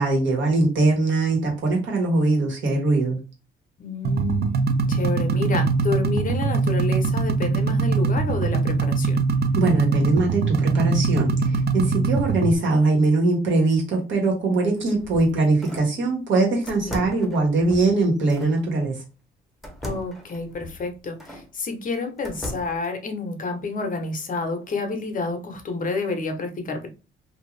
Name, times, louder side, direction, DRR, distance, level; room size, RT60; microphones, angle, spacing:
voice 1, 0.0-3.2 9.5-18.9, right 2 dB, 70° right, 1.4 m, -21 dB
voice 2, 3.8-4.6 4.9-9.2 16.9-17.0 19.8-26.9, left 3 dB, 45° left, 0.8 m, -29 dB
sound 1, 4.0-12.5, right 4 dB, 55° right, 0.5 m, -22 dB
sound 2, 14.8-16.0 16.7-18.6 19.6-21.5 21.9-22.9, left 1 dB, ahead, 0.9 m, -38 dB
2.6 x 2.4 x 3.2 m
cardioid pair, 90°, 20 cm